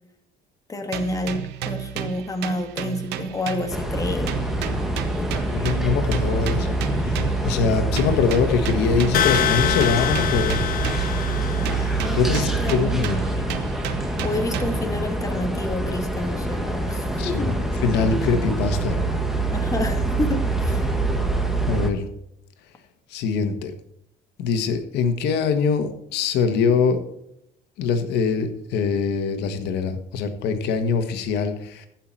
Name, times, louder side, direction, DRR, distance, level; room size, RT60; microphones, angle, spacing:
voice 1, 0.7-4.3 12.0-13.2 14.2-17.5 19.5-21.0, left 2 dB, 20° left, 5 dB, 1.7 m, -29 dB
sound 1, 0.9-4.0 4.3-7.5 8.0-11.3 11.6-15.0, right 10 dB, 85° right, 0.9 m, -33 dB
sound 2, 3.7-21.9, right 2 dB, ahead, 1.5 m, -25 dB
voice 2, 5.3-10.6 12.1-13.3 17.2-17.5 17.8-19.0 21.7-22.1 23.1-23.7 24.4-27.0 27.8-31.9, left 5 dB, 80° left, 8 dB, 1.5 m, -23 dB
sound 3, 9.1-12.1, left 10 dB, 60° left, 1.0 m, -25 dB
14.5 x 5.9 x 4.3 m, 0.77 s
cardioid pair, 110°, 17 cm